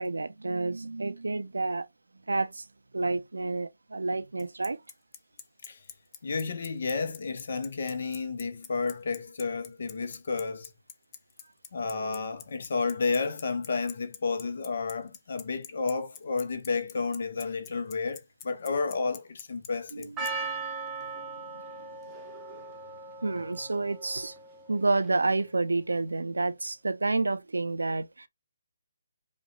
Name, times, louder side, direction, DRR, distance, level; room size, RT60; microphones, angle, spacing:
voice 1, 0.0-1.9 2.3-2.6 2.9-4.8 19.9-20.1 23.2-24.3 24.7-28.3, right 3 dB, 70° right, 0.4 m, -29 dB
Bicycle, 4.4-20.3, left 9 dB, 20° left, 0.4 m, -44 dB
voice 2, 6.2-10.7 11.7-20.1, left 4 dB, 50° left, 0.7 m, -31 dB
Percussion, 20.2-25.4, right 4 dB, 10° right, 0.8 m, -39 dB
5.0 x 2.3 x 2.5 m
figure-of-eight pair, 140°, 0 cm